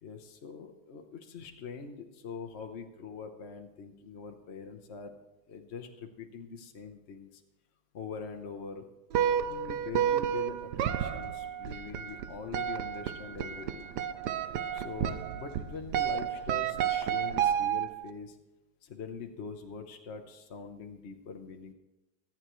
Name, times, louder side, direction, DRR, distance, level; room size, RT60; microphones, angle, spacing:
voice 1, 0.0-5.1 5.5-7.4 7.9-8.9 9.5-13.9 14.7-18.4 18.8-21.7, left 5 dB, 50° left, 4 dB, 0.9 m, -43 dB
sound 1, 9.1-18.1, right 9 dB, 70° right, 1.2 m, -31 dB
24.5 x 9.0 x 3.1 m, 1.0 s
omnidirectional pair, 2.0 m